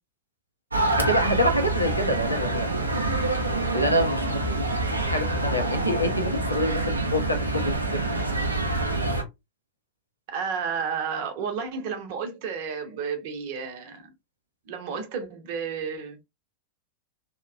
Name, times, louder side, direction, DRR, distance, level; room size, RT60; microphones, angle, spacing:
sound 1, 0.7-9.2, right 2 dB, 80° right, 0.5 m, -26 dB
voice 1, 1.0-2.7 3.7-8.1 8.6-8.9, equal, 90° left, 0.6 m, -27 dB
voice 2, 10.3-14.1 14.7-16.2, right 6 dB, 50° right, 0.8 m, -32 dB
3.0 x 2.1 x 2.4 m
figure-of-eight pair, 90°, 0 cm